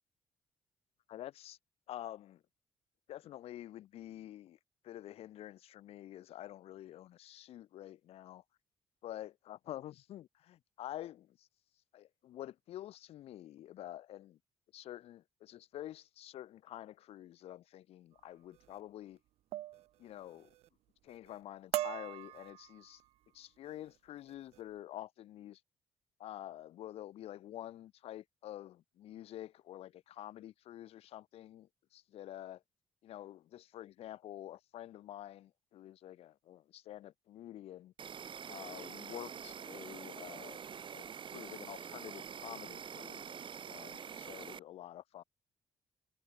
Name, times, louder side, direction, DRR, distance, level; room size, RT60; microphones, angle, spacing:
voice 1, 1.1-1.6 1.9-2.4 3.1-4.6 4.8-8.4 9.0-11.5 11.9-14.4 14.7-19.2 20.0-20.5 21.0-23.0 23.3-25.6 26.2-32.6 33.0-37.9 38.5-40.6 40.9-43.3 43.6-45.2, left 13 dB, 80° left, 7.5 m, -48 dB
sound 1, 18.5-18.8 19.5-19.9 20.2-20.7 21.1-21.4 21.7-23.1 23.7-23.9 24.3-24.6, right 14 dB, 80° right, 2.5 m, -41 dB
Insect, 38.0-44.6, right 7 dB, 55° right, 2.6 m, -46 dB
supercardioid pair, 60°, 10 cm